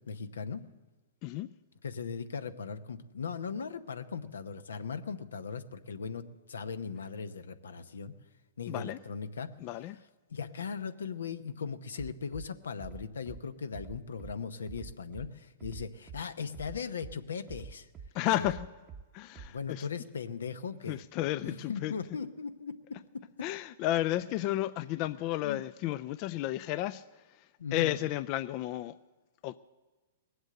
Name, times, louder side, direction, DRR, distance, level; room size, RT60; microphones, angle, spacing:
voice 1, 0.1-0.6 1.8-6.2 6.5-8.1 8.6-9.5 10.3-17.9 18.3-18.5 19.5-21.0 21.4-23.0 25.4-25.6 27.6-28.0, left 5 dB, 90° left, 0.9 m, -38 dB
voice 2, 8.7-9.0 9.6-10.0 18.1-18.7 19.1-19.9 20.9-21.9 23.4-27.0 27.7-28.9 29.4-29.6, left 15 dB, 40° left, 0.4 m, -32 dB
Bass drum, 12.0-12.5 12.8-13.4 13.7-14.3 14.7-15.3 15.6-16.2 16.5-17.1 17.5-18.1 18.4-19.0 19.3-19.5, right 6 dB, 25° right, 0.8 m, -45 dB
19.5 x 8.0 x 7.7 m
hypercardioid pair, 130°, 0 cm